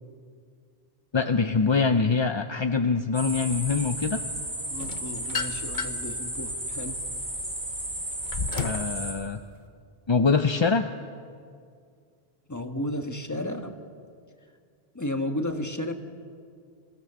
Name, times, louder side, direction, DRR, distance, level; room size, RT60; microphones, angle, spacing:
voice 1, 1.1-4.2 8.6-9.4 10.1-10.9, left 4 dB, 35° left, 7 dB, 0.5 m, -24 dB
sound 1, 3.1-9.1, right 1 dB, 45° right, 4.2 m, -33 dB
voice 2, 4.7-7.0 12.5-13.8 14.9-15.9, left 1 dB, 15° left, 5 dB, 1.4 m, -33 dB
sound 2, 4.8-6.1 6.7-8.9, left 5 dB, 50° left, 1.1 m, -33 dB
27.5 x 16.5 x 6.9 m, 2.2 s
omnidirectional pair, 1.1 m